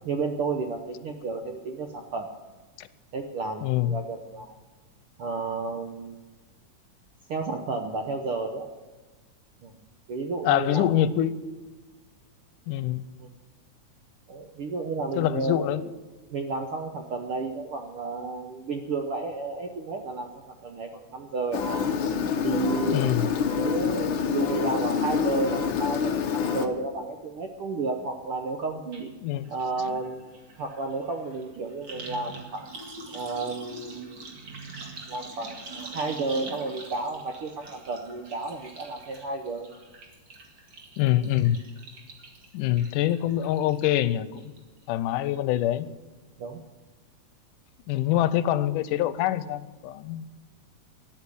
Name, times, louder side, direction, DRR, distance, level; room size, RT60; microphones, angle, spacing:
voice 1, 0.0-2.3 3.1-4.5 5.2-6.2 7.3-8.7 9.6-9.7 10.1-10.9 13.2-13.3 14.3-15.7 16.3-21.8 22.4-29.1 29.5-30.2 30.6-32.7 33.1-34.2 35.1-39.7 46.4-46.6, right 3 dB, 70° right, 4 dB, 1.3 m, -32 dB
voice 2, 3.6-4.0 10.5-11.3 12.7-13.0 15.1-15.8 22.9-23.3 29.2-29.4 41.0-41.6 42.5-44.5 44.9-45.9 47.9-50.3, left 12 dB, 85° left, 15 dB, 2.2 m, -25 dB
Engine, 21.5-26.7, left 6 dB, 65° left, 1.2 m, -27 dB
sound 1, 28.9-29.0 29.3-44.0 44.3-44.8 45.1-45.2, right 3 dB, 40° right, 2.4 m, -44 dB
13.0 x 10.5 x 8.5 m, 1.3 s
omnidirectional pair, 3.7 m